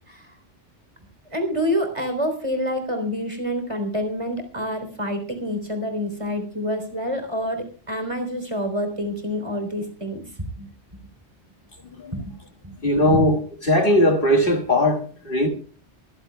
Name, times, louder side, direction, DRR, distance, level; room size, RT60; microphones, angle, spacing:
voice 1, 1.3-10.2 10.6-10.7 12.1-12.4 12.6-12.7 13.1-13.2, equal, 25° right, 3.7 m, -27 dB
voice 2, 12.8-15.5, left 1 dB, 50° left, 2.1 m, -19 dB
24.0 x 14.5 x 2.3 m
omnidirectional pair, 1.2 m